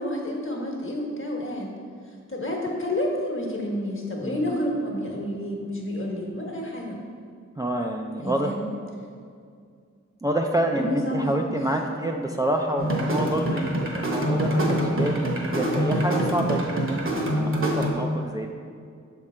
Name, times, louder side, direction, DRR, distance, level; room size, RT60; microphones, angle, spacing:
voice 1, 0.0-1.7 2.3-7.0 8.2-8.6 10.7-11.6, left 1 dB, 45° left, -1 dB, 1.2 m, -29 dB
voice 2, 4.2-4.6 7.6-8.5 10.2-17.0 17.4-18.5, right 1 dB, 15° right, 1 dB, 0.3 m, -27 dB
sound 1, 12.8-17.9, right 1 dB, 45° right, 1.0 m, -25 dB
6.3 x 3.7 x 4.3 m, 2.2 s
wide cardioid pair, 60°, 29 cm